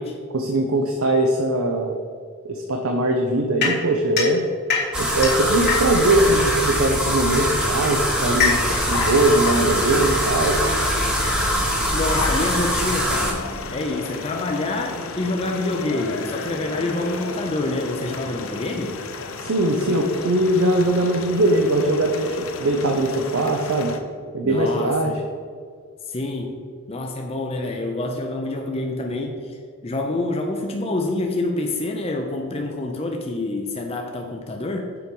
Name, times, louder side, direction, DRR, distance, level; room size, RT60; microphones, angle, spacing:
voice 1, 0.3-2.0 2.4-4.4 5.0-8.6 8.9-10.6 19.4-23.9 24.3-25.2, right 1 dB, 70° right, 2 dB, 0.6 m, -21 dB
sound 1, 3.6-6.2 7.2-10.6, left 5 dB, 45° left, 1.3 m, -26 dB
sound 2, 4.9-13.3, equal, 5° right, 1.0 m, -23 dB
sound 3, 8.6-24.0, left 4 dB, 65° left, 0.6 m, -33 dB
voice 2, 11.9-19.0 24.4-25.2 26.0-26.6 26.9-34.9, left 2 dB, 25° left, 2 dB, 0.5 m, -27 dB
6.9 x 4.6 x 5.2 m, 2.1 s
head